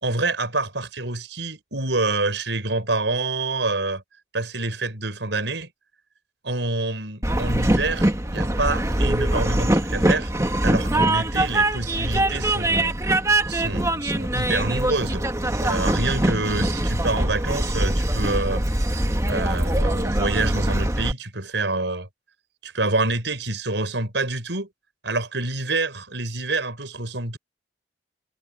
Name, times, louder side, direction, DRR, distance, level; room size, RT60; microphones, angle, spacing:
voice 1, 0.0-4.0 4.3-5.7 6.4-10.3 10.6-13.0 13.5-15.2 15.6-18.6 19.3-22.1 22.6-24.7 25.0-27.4, right 2 dB, 85° right, 5.3 m, -27 dB
Train, 7.2-21.1, right 1 dB, 15° right, 1.7 m, -23 dB
head